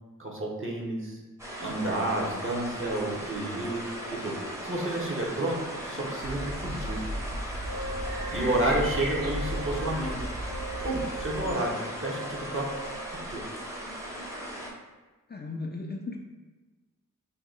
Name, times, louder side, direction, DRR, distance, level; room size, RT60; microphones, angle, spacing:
voice 1, 0.2-1.2 1.6-3.8 4.2-4.3 4.6-5.6 5.8-7.0 8.3-10.2 10.8-12.6 13.3-13.4, right 1 dB, 40° right, -2 dB, 0.9 m, -30 dB
sound 1, 1.4-14.7, equal, 10° right, 0.8 m, -38 dB
sound 2, 6.2-11.5, right 1 dB, 75° right, 0.7 m, -35 dB
Wind instrument woodwind instrument, 7.6-13.2, right 1 dB, 60° right, 1.3 m, -41 dB
voice 2, 11.4-11.8 15.3-16.2, left 3 dB, 30° left, 0 dB, 0.4 m, -37 dB
2.8 x 2.7 x 3.8 m, 1.2 s
wide cardioid pair, 50°, 34 cm